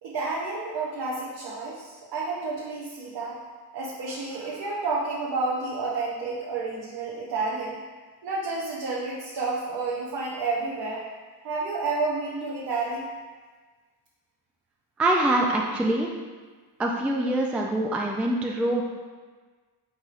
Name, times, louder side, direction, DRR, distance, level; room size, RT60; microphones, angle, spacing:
voice 1, 0.0-3.4 3.7-7.8 8.2-11.0 11.4-13.1, right 3 dB, 65° right, -5 dB, 0.8 m, -30 dB
voice 2, 15.0-16.1 16.8-18.8, right 1 dB, 5° right, 0 dB, 0.3 m, -24 dB
4.8 x 4.1 x 2.5 m, 1.4 s
cardioid pair, 100°, 41 cm